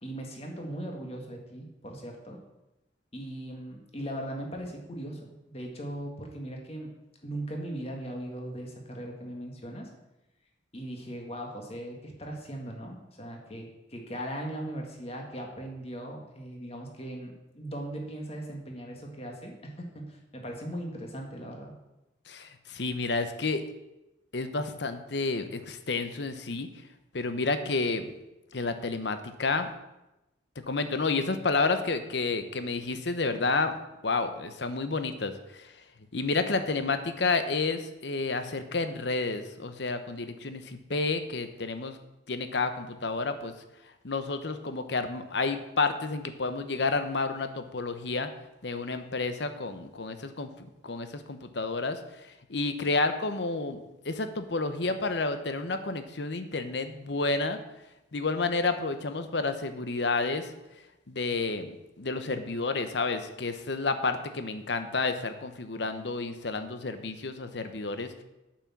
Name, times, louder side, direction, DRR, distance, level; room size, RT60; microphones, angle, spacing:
voice 1, 0.0-2.4 3.1-6.9 7.2-9.9 10.7-21.7, right 1 dB, 35° left, 1 dB, 1.9 m, -39 dB
voice 2, 22.3-23.6 24.3-26.7 27.1-28.1 28.5-29.7 30.7-33.7 34.0-35.7 36.1-42.0 42.3-43.5 44.0-48.3 48.6-50.5 50.8-57.6 58.1-60.5 61.1-68.2, left 3 dB, 65° left, 9 dB, 0.9 m, -30 dB
8.7 x 6.0 x 7.3 m, 0.96 s
head